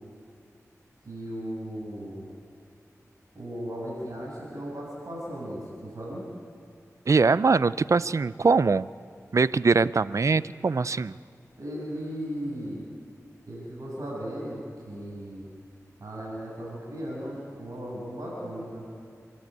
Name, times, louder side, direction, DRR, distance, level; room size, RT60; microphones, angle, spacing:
voice 1, 1.0-2.2 3.3-6.3 11.6-12.8 13.5-15.5 16.0-18.8, equal, 75° right, -6 dB, 7.8 m, -36 dB
voice 2, 7.1-8.9 9.3-11.1, right 4 dB, 60° right, 17 dB, 0.5 m, -22 dB
29.0 x 12.0 x 9.6 m, 2.2 s
wide cardioid pair, 60°, 6 cm